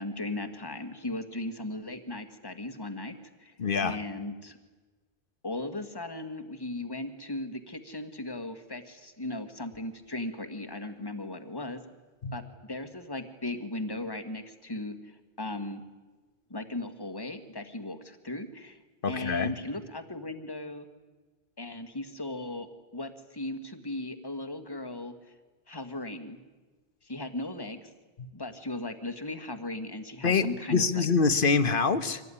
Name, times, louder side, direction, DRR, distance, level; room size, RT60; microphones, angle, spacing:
voice 1, 0.0-3.5 3.8-4.6 5.4-11.8 12.3-15.8 16.5-18.8 19.1-20.9 21.6-25.3 25.7-26.4 27.0-27.9 28.3-31.1, left 2 dB, 20° left, 8 dB, 1.7 m, -37 dB
voice 2, 3.6-4.0 12.2-12.4 19.0-19.5 28.2-28.3 30.2-32.2, left 5 dB, 55° left, 11 dB, 1.4 m, -25 dB
25.0 x 18.0 x 9.9 m, 1.3 s
omnidirectional pair, 1.1 m